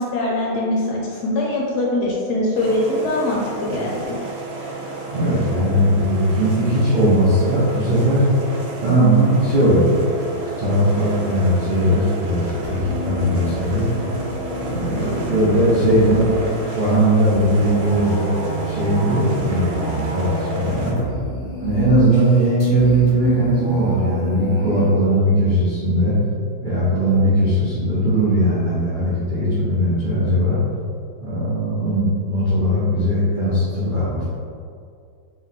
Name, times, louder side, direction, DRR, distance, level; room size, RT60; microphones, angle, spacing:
voice 1, 0.0-4.1, left 1 dB, 70° left, -3 dB, 1.1 m, -22 dB
sound 1, 2.5-20.9, right 2 dB, 75° right, 1.3 m, -31 dB
voice 2, 5.1-8.2 8.8-9.9 10.3-13.8 14.6-16.3 16.7-18.4 18.7-21.0 21.6-26.1 26.6-30.6 31.2-34.2, right 1 dB, 55° right, -10 dB, 0.5 m, -19 dB
sound 2, 12.6-24.9, equal, 15° left, 0.9 m, -31 dB
3.1 x 3.1 x 4.0 m, 2.3 s
omnidirectional pair, 2.0 m